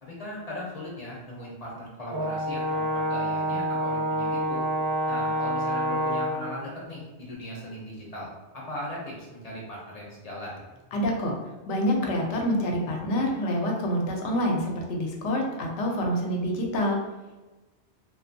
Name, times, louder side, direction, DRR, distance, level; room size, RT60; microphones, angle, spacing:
voice 1, 0.0-4.7 5.1-8.3 8.5-10.6, left 1 dB, 45° left, -4 dB, 0.6 m, -38 dB
Brass instrument, 2.1-6.5, right 1 dB, 30° right, 0.4 m, -27 dB
voice 2, 10.9-11.3 11.7-17.0, equal, 90° left, 0 dB, 0.9 m, -27 dB
2.5 x 2.3 x 2.5 m, 1.1 s
omnidirectional pair, 1.1 m